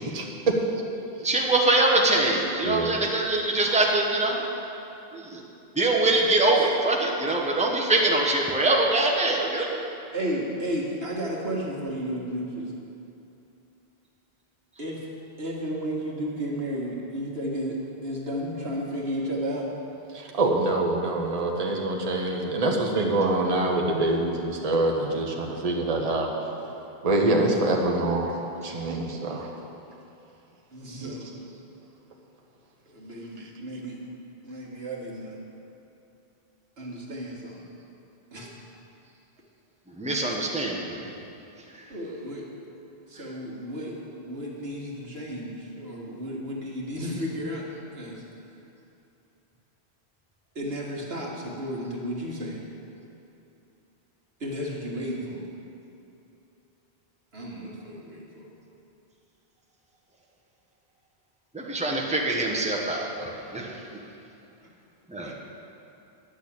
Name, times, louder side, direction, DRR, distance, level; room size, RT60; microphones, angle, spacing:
voice 1, 1.2-4.4 5.1-5.4 5.8-9.8 40.0-41.0 61.5-63.7 65.1-65.3, right 2 dB, 5° right, -1 dB, 1.0 m, -23 dB
voice 2, 2.6-3.0 20.1-26.3 27.0-28.3 28.6-29.5 31.0-31.1 33.4-33.5, right 2 dB, 40° right, 0 dB, 1.0 m, -25 dB
voice 3, 3.6-3.9 6.6-6.7 10.1-12.7 14.8-15.0 15.4-19.7 30.7-31.4 32.9-34.0 34.4-35.4 36.8-37.7 38.3-38.5 41.9-42.5 43.1-47.7 47.9-48.2 50.6-52.6 54.4-55.4 57.3-58.5 65.2-65.3, equal, 85° right, -3 dB, 1.9 m, -33 dB
10.0 x 6.4 x 8.7 m, 2.8 s
omnidirectional pair, 1.0 m